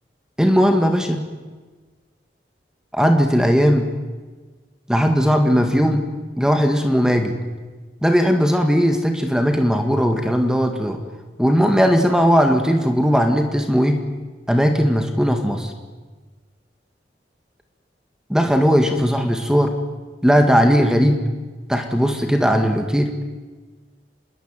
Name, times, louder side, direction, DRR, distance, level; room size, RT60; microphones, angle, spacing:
voice 1, 0.4-1.2 2.9-3.9 4.9-6.0 6.4-7.4 8.0-11.0 11.4-14.0 14.5-15.7 18.3-19.7 20.2-21.2 21.7-23.1, equal, 5° right, 5 dB, 2.0 m, -17 dB
27.0 x 21.5 x 9.1 m, 1.3 s
head